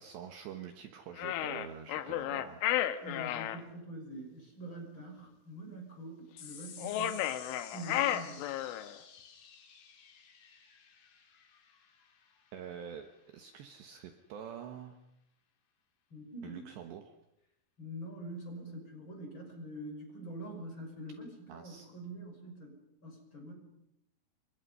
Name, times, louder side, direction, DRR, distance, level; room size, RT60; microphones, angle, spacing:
voice 1, 0.0-2.6 12.5-15.0 16.4-17.2 21.5-21.9, right 8 dB, 70° right, 6 dB, 3.0 m, -46 dB
sound 1, 1.2-3.6 6.8-8.9, left 12 dB, 75° left, 3.4 m, -33 dB
voice 2, 3.0-7.2 7.7-8.5 16.1-16.7 17.8-22.8 23.0-23.5, right 1 dB, 25° left, 2 dB, 6.2 m, -45 dB
sound 2, 6.4-13.2, left 7 dB, 50° left, 3.9 m, -53 dB
28.5 x 24.5 x 5.6 m, 0.84 s
omnidirectional pair, 6.0 m